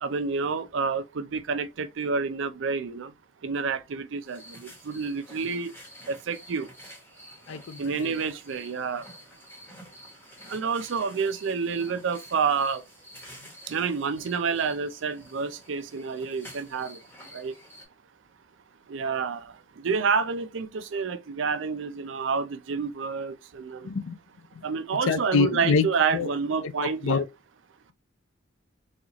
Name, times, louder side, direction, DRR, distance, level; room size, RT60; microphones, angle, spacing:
voice 1, 0.0-3.1 3.4-5.7 6.1-6.7 7.8-9.0 10.5-12.8 13.7-17.0 17.3-17.5 18.9-19.4 19.8-23.9 24.6-27.2, right 5 dB, 70° right, 0.4 m, -29 dB
sound 1, 4.2-17.8, equal, 10° left, 1.1 m, -49 dB
voice 2, 7.5-8.1 23.8-24.2 24.6-24.7 25.0-26.3 26.6-26.7 27.0-27.3, left 5 dB, 80° left, 0.5 m, -26 dB
4.2 x 2.4 x 2.8 m
head